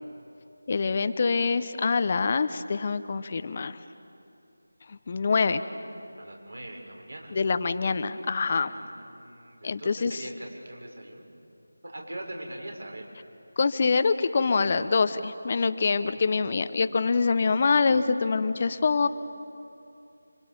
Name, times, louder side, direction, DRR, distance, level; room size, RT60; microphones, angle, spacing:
voice 1, 0.7-3.8 4.9-5.6 7.3-8.7 9.6-10.2 13.6-19.1, left 4 dB, 35° left, 11 dB, 0.9 m, -25 dB
voice 2, 6.1-7.3 8.6-11.3 11.8-13.0 16.1-16.4, right 1 dB, 75° right, 1 dB, 6.6 m, -42 dB
29.0 x 26.5 x 7.2 m, 2.6 s
figure-of-eight pair, 165°, 0 cm